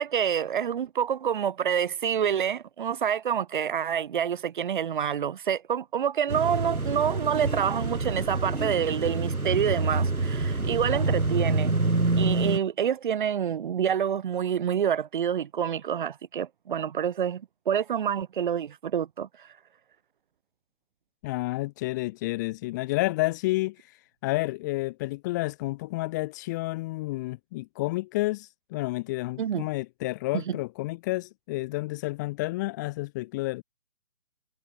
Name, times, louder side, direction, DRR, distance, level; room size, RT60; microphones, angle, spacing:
voice 1, 0.0-11.8 12.2-19.5 29.4-29.7 30.3-30.6, right 8 dB, 35° right, 5.0 m, -27 dB
sound 1, 6.3-12.6, right 3 dB, 85° right, 3.2 m, -27 dB
voice 2, 21.2-24.0 24.2-33.6, left 20 dB, 15° left, 1.5 m, -30 dB
figure-of-eight pair, 150°, 42 cm